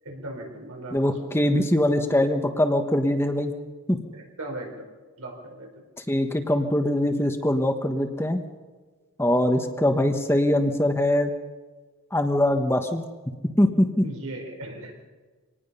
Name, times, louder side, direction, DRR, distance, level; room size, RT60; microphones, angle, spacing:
voice 1, 0.0-1.6 4.1-4.8 5.2-5.8 14.0-15.1, right 1 dB, 90° right, 1 dB, 4.6 m, -38 dB
voice 2, 0.9-3.5 3.9-4.0 6.1-8.4 9.2-11.3 12.1-13.0 13.6-14.0, left 1 dB, 10° left, 6 dB, 1.1 m, -22 dB
25.5 x 19.0 x 5.6 m, 1.4 s
head